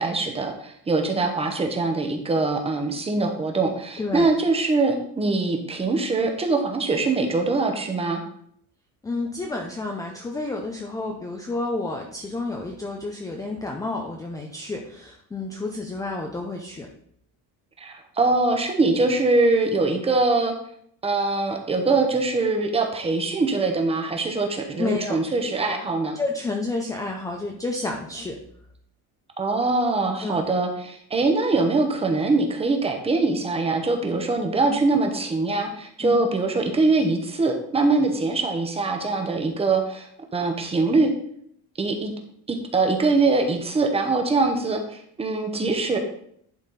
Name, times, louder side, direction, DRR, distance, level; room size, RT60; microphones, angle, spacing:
voice 1, 0.0-8.2 17.8-20.5 21.0-26.2 29.4-41.1 41.8-42.1 42.5-46.0, right 3 dB, 15° right, 4 dB, 0.9 m, -23 dB
voice 2, 4.0-4.3 9.0-16.9 24.8-25.2 26.2-28.4 30.2-30.4 34.7-34.8 36.0-36.1 45.6-45.7, left 2 dB, 10° left, 2 dB, 0.5 m, -30 dB
10.5 x 4.2 x 4.0 m, 0.67 s
cardioid pair, 165°, 37 cm